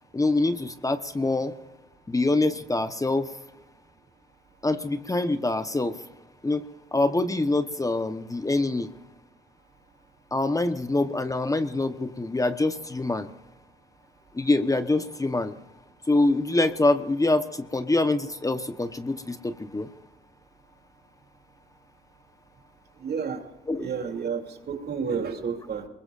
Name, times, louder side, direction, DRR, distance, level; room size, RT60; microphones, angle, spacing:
voice 1, 0.1-1.5 2.1-3.3 4.6-6.0 6.4-6.6 6.9-8.9 10.3-13.3 14.3-15.5 16.1-19.9 23.7-23.9, left 2 dB, 15° left, 9 dB, 1.0 m, -25 dB
voice 2, 23.0-23.4 23.8-25.9, right 6 dB, 55° right, 4 dB, 2.8 m, -31 dB
24.5 x 22.0 x 2.5 m, 0.98 s
cardioid pair, 90°, 20 cm